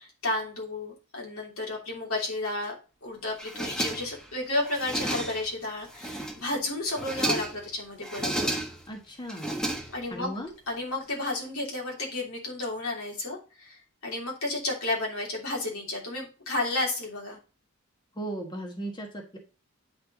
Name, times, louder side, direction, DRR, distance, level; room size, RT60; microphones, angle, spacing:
voice 1, 0.0-2.7 3.0-8.5 9.9-10.3 10.7-17.4, left 2 dB, 80° left, -2 dB, 3.1 m, -32 dB
sound 1, 3.4-4.3 4.6-5.5 5.9-6.5 6.9-7.7 8.0-8.9 9.3-10.3, right 1 dB, 5° left, 1.2 m, -32 dB
voice 2, 8.9-9.5 10.1-10.5 18.2-19.4, right 1 dB, 20° left, 1 dB, 1.3 m, -36 dB
8.5 x 4.5 x 3.9 m, 0.33 s
head